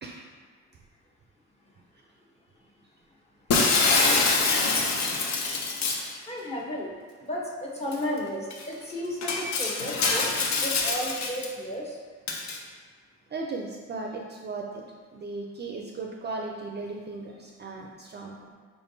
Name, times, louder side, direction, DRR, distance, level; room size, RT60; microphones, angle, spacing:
Shatter, 3.5-6.1 7.9-8.0 8.5-8.6 9.2-11.5 12.3-12.6, left 3 dB, 65° left, 0.6 m, -25 dB
voice 1, 4.0-4.8 6.3-6.9 7.2-10.3 10.6-12.0, left 1 dB, 20° left, -3 dB, 0.9 m, -34 dB
voice 2, 13.3-14.8 15.1-18.5, right 3 dB, 35° right, 0 dB, 0.4 m, -36 dB
4.5 x 3.4 x 2.7 m, 1.5 s
cardioid pair, 90°, 30 cm